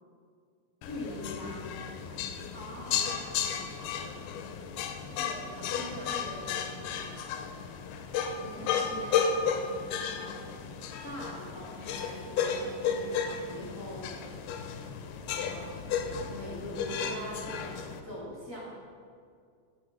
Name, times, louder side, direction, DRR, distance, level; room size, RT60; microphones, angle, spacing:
pot scrape, 0.8-18.0, left 6 dB, 90° left, 2.2 m, -34 dB
voice 1, 0.8-2.5 8.4-10.4 11.0-14.2 15.4-15.8 16.3-17.8 18.0-18.7, left 1 dB, 75° left, -7 dB, 0.7 m, -43 dB
voice 2, 2.5-4.2 5.1-7.2, right 1 dB, 75° right, -6 dB, 0.9 m, -46 dB
8.7 x 5.1 x 6.1 m, 2.2 s
omnidirectional pair, 3.7 m